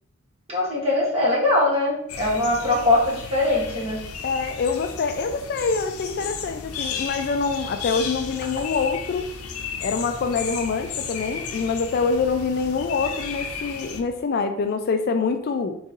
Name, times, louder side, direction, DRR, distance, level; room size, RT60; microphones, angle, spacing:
voice 1, 0.5-4.0, left 2 dB, 30° right, -5 dB, 1.7 m, -21 dB
sound 1, 2.1-14.0, left 6 dB, 85° left, 0.6 m, -34 dB
voice 2, 4.2-9.3 9.8-15.8, left 4 dB, 45° left, 8 dB, 0.3 m, -25 dB
4.5 x 3.8 x 3.0 m, 0.72 s
head